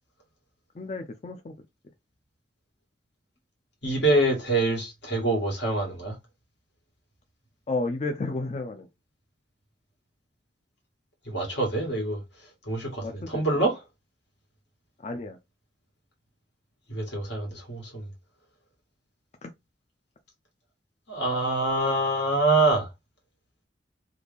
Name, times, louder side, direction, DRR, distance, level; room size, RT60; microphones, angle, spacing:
voice 1, 0.8-1.5 7.7-8.9 13.0-13.4 15.0-15.4 19.4-19.5, left 2 dB, 35° left, 0.4 m, -32 dB
voice 2, 3.8-6.2 11.3-12.2 12.7-13.8 16.9-18.0 21.1-22.9, right 2 dB, 75° left, 1.7 m, -25 dB
3.3 x 2.3 x 3.4 m
head